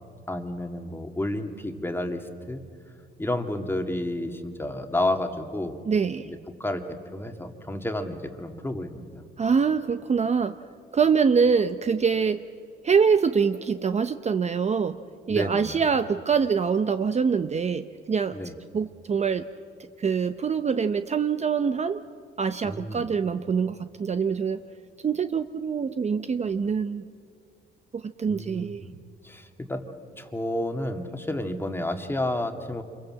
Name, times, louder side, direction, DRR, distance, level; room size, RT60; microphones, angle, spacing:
voice 1, 0.3-2.6 3.2-5.8 6.3-6.8 7.1-9.1 15.3-15.8 18.3-18.5 22.6-23.1 28.3-28.9 29.2-29.8 30.2-32.8, left 1 dB, 10° left, 5 dB, 2.1 m, -31 dB
voice 2, 5.9-6.3 9.4-10.5 10.9-12.4 12.8-15.0 15.3-18.3 18.7-19.4 20.0-22.0 22.4-24.6 25.0-27.0 27.9-28.8, right 6 dB, 35° right, 10 dB, 0.7 m, -24 dB
26.5 x 22.5 x 7.6 m, 2.2 s
cardioid pair, 90°, 20 cm